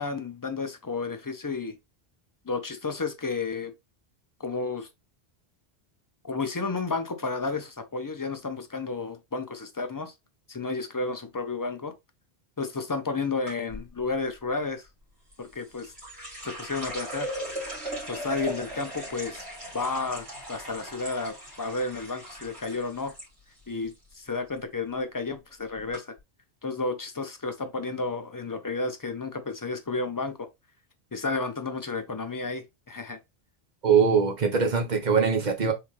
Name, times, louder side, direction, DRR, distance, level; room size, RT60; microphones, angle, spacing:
voice 1, 0.0-1.8 2.5-3.7 4.4-4.9 6.2-10.1 10.5-11.9 12.6-14.9 15.4-15.9 16.4-17.3 18.1-19.4 19.7-23.1 23.7-26.1 26.6-30.5 31.1-33.2, left 3 dB, 30° left, 0.4 m, -32 dB
sound 1, 13.5-13.9 15.3-23.3 23.6-24.2 24.5-24.8 25.5-25.6 25.9-26.0, right 1 dB, 85° right, 2.6 m, -38 dB
voice 2, 33.8-35.7, right 6 dB, 45° right, 1.0 m, -22 dB
3.8 x 3.4 x 3.1 m
omnidirectional pair, 1.1 m